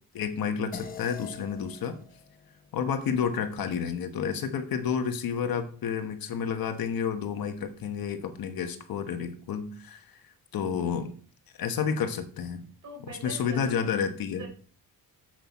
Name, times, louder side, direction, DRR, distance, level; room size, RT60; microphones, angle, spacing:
voice 1, 0.1-1.9 2.7-10.0 10.5-11.1 11.6-12.6 13.2-14.5, left 7 dB, 65° left, 8 dB, 1.2 m, -30 dB
sound 1, 0.7-5.4, left 6 dB, 25° left, 0.8 m, -48 dB
voice 2, 12.8-13.9 14.4-14.5, right 1 dB, 55° right, 1 dB, 4.2 m, -42 dB
8.3 x 7.7 x 4.2 m, 0.43 s
wide cardioid pair, 175°, 37 cm